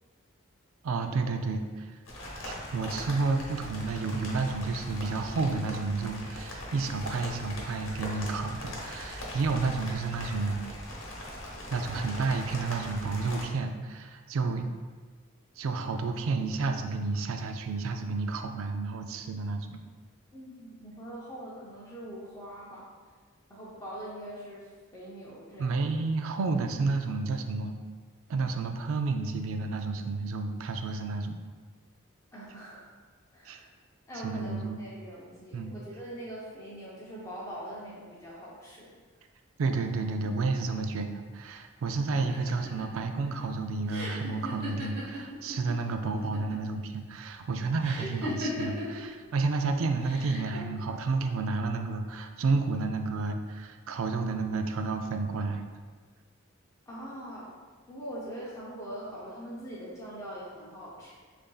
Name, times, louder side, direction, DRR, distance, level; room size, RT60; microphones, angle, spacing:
voice 1, 0.8-2.0 2.4-10.6 11.7-14.7 15.6-19.8 25.6-27.8 28.3-31.4 33.5-33.6 34.2-34.8 35.5-35.7 39.6-55.6, right 3 dB, 80° right, 6 dB, 0.4 m, -31 dB
sound 1, 2.0-13.5, left 1 dB, 75° left, 0.9 m, -40 dB
voice 2, 20.3-22.9 23.5-25.8 32.3-32.9 33.3-33.6 34.1-38.9 56.9-57.5 57.9-61.1, equal, 15° left, -7 dB, 0.7 m, -42 dB
sound 2, 42.2-45.7 46.0-46.7 47.8-49.0 50.0-50.6, equal, 50° right, 1.1 m, -37 dB
6.6 x 2.6 x 2.3 m, 1.5 s
head